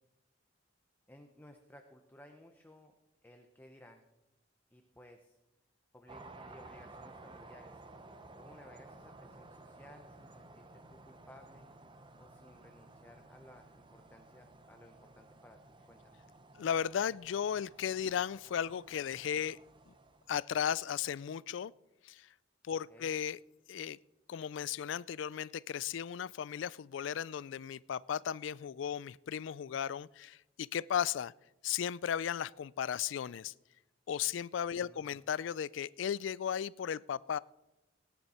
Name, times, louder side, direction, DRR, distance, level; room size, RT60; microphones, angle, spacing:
voice 1, 1.1-2.9 3.2-4.1 4.7-5.4 5.9-7.9 8.4-11.7 12.2-16.2 22.7-23.1 34.7-35.2, left 1 dB, 10° left, 4 dB, 0.8 m, -58 dB
sound 1, 6.1-20.4, right 2 dB, 25° right, 0.7 m, -55 dB
voice 2, 16.6-19.6 19.9-20.0 20.3-21.7 22.0-22.3 22.6-23.4 23.7-24.0 24.3-31.3 31.6-33.5 34.1-37.4, left 8 dB, 70° left, 21 dB, 0.3 m, -35 dB
18.5 x 9.8 x 4.3 m, 1.0 s
head